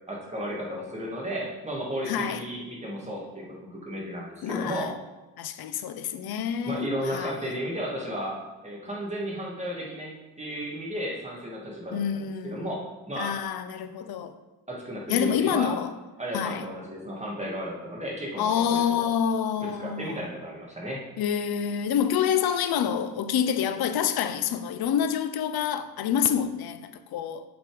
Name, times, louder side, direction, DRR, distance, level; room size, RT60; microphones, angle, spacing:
voice 1, 0.1-4.9 6.7-13.4 14.7-15.7 16.2-19.1 19.6-21.0, equal, 15° right, 2.0 m, -34 dB
voice 2, 2.1-2.4 4.4-4.9 5.4-7.4 11.9-12.7 13.2-14.3 15.1-15.9 16.3-16.6 18.4-20.2 21.2-27.4, left 8 dB, 70° left, 0.7 m, -27 dB
7.1 x 5.5 x 5.0 m
cardioid pair, 105°, 38 cm